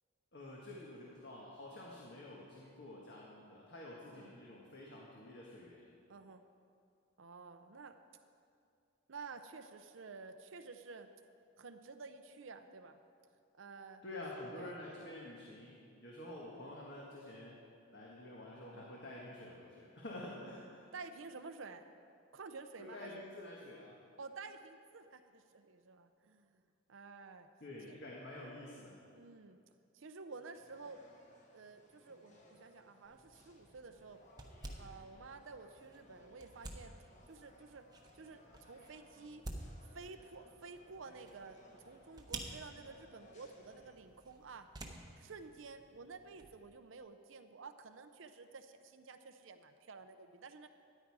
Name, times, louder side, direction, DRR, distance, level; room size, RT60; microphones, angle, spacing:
voice 1, 0.3-5.9 14.0-17.6 17.9-20.8 22.8-24.0 27.6-29.0, left 1 dB, 55° left, -4 dB, 1.5 m, -49 dB
voice 2, 6.1-6.4 7.2-8.0 9.1-11.1 11.6-13.0 13.6-14.0 14.6-14.7 16.6-16.7 18.7-18.9 20.9-21.9 22.3-23.2 24.2-26.6 26.9-27.5 27.9-28.0 29.1-29.6 29.9-31.0 31.5-34.2 34.8-36.9 37.3-37.9 38.1-39.4 39.9-44.7 45.2-50.7, right 4 dB, 75° right, 8 dB, 0.6 m, -51 dB
sound 1, 30.5-43.9, left 1 dB, 35° left, 1.2 m, -64 dB
sound 2, 33.0-46.6, right 2 dB, 20° right, 0.9 m, -52 dB
13.0 x 10.0 x 4.8 m, 2.4 s
head